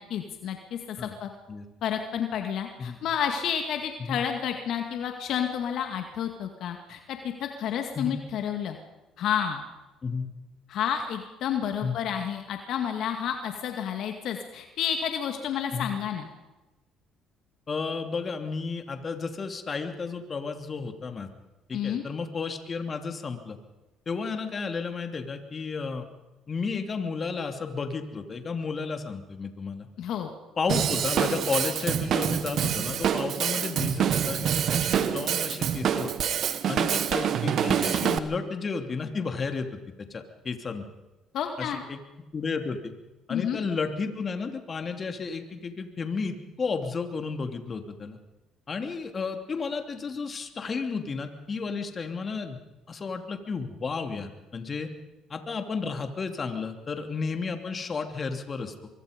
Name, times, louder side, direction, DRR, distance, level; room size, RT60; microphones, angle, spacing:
voice 1, 0.0-1.3 1.8-8.8 9.2-9.6 10.7-16.3 21.7-22.0 30.0-30.3 41.3-41.8 43.3-43.6, left 8 dB, 65° left, 5 dB, 2.1 m, -30 dB
voice 2, 17.7-21.3 21.7-23.6 24.1-26.0 26.5-29.9 30.6-36.1 36.7-39.7 40.1-40.8 41.6-42.0 42.3-42.9 43.3-48.2 48.7-52.6 52.9-54.9 55.3-58.7, left 4 dB, 40° left, 6 dB, 2.9 m, -32 dB
Drum kit / Drum, 30.7-38.2, right 9 dB, 60° right, 1.4 m, -26 dB
24.0 x 24.0 x 5.3 m, 1.1 s
supercardioid pair, 65°, 0 cm